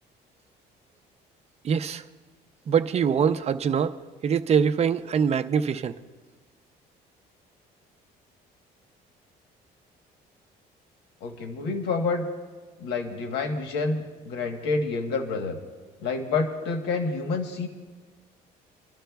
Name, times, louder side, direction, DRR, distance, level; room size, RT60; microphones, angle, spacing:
voice 1, 1.6-2.0 2.7-3.9 4.2-5.9, right 7 dB, 40° right, 9 dB, 0.6 m, -23 dB
voice 2, 11.2-12.3 12.8-15.6 16.0-17.7, left 4 dB, 90° left, 5 dB, 1.2 m, -28 dB
29.5 x 12.5 x 2.3 m, 1.4 s
cardioid pair, 110°, 17 cm